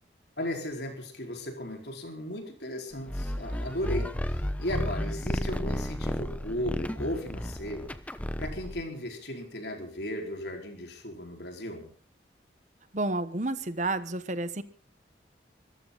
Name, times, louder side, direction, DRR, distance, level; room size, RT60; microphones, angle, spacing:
voice 1, 0.4-7.9 8.4-11.9, left 1 dB, 70° left, 3 dB, 4.5 m, -36 dB
sound 1, 3.1-8.8, equal, 10° left, 0.9 m, -33 dB
voice 2, 12.9-14.6, right 2 dB, 40° right, 13 dB, 1.1 m, -30 dB
24.0 x 14.5 x 4.0 m, 0.39 s
head